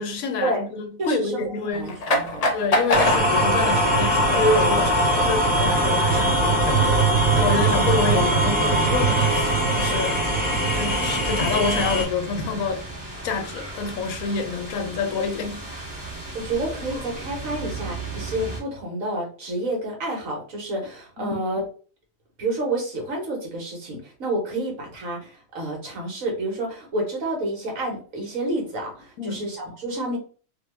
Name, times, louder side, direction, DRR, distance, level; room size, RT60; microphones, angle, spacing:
voice 1, 0.0-2.0 2.5-10.3 10.7-12.9 13.2-15.6 21.2-21.4 29.2-29.5, left 4 dB, 85° left, 1.1 m, -27 dB
voice 2, 1.0-2.4 16.3-21.6 22.4-30.2, right 1 dB, 75° right, 1.6 m, -29 dB
sound 1, 1.7-12.8, left 1 dB, 50° left, 0.5 m, -31 dB
sound 2, 2.9-12.0, right 1 dB, 10° right, 0.5 m, -21 dB
sound 3, 10.4-18.6, right 2 dB, 30° right, 1.5 m, -36 dB
3.2 x 2.3 x 3.2 m
omnidirectional pair, 1.4 m